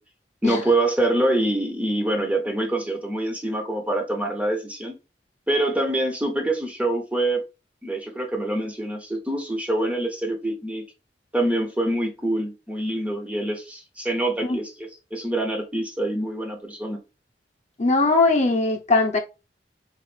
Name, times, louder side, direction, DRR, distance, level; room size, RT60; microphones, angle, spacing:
voice 1, 0.4-5.0 5.5-7.4 7.8-10.8 11.3-17.0, right 1 dB, 10° right, 0.7 m, -25 dB
voice 2, 17.8-19.2, left 3 dB, 40° left, 0.7 m, -20 dB
4.0 x 2.5 x 3.1 m
head